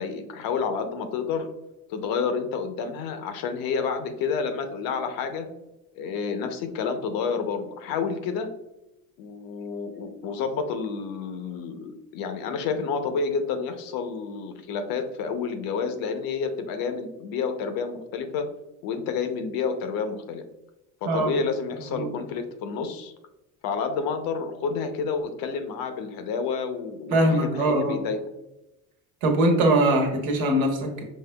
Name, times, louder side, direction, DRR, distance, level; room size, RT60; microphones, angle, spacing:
voice 1, 0.0-1.5 1.9-5.5 6.0-8.5 9.2-18.5 18.8-20.4 21.0-23.1 23.6-28.2, left 5 dB, 65° left, 7 dB, 0.8 m, -29 dB
voice 2, 21.0-21.4 21.9-22.1 27.1-28.0 29.2-31.0, right 1 dB, 75° right, 2 dB, 1.2 m, -22 dB
5.4 x 3.2 x 2.2 m, 0.96 s
cardioid pair, 110°, 38 cm